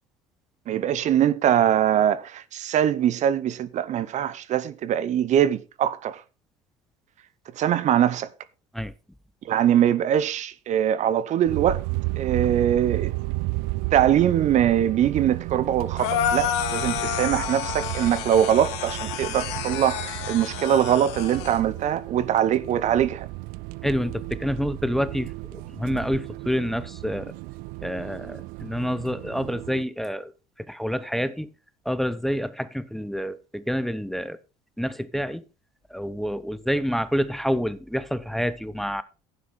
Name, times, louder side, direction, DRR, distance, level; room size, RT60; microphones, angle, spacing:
voice 1, 0.7-6.2 7.6-8.3 9.4-11.8 12.2-13.1 13.9-23.3, right 10 dB, 55° right, 1.0 m, -22 dB
sound 1, 11.5-29.8, right 23 dB, 75° right, 0.5 m, -33 dB
sound 2, 16.0-21.6, left 10 dB, 85° left, 1.8 m, -30 dB
voice 2, 23.8-25.3 25.8-27.3 27.8-30.3 30.7-31.5 31.8-34.4 34.8-35.4 35.9-39.0, equal, ahead, 0.9 m, -27 dB
11.0 x 9.5 x 4.3 m
supercardioid pair, 80°, 15 cm